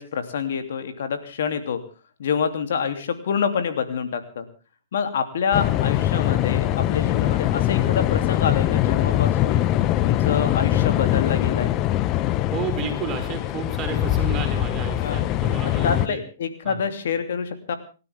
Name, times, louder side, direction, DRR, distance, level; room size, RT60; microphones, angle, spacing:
voice 1, 0.0-1.8 2.2-4.4 4.9-9.6 10.0-11.7 15.0-15.2 15.6-17.8, left 6 dB, 65° left, 9 dB, 2.9 m, -27 dB
sound 1, 5.5-16.1, left 13 dB, 35° left, 0.8 m, -22 dB
voice 2, 12.5-16.2 16.6-16.8, right 6 dB, 30° right, 6 dB, 5.4 m, -32 dB
30.0 x 13.0 x 3.6 m, 0.35 s
hypercardioid pair, 125°, 0 cm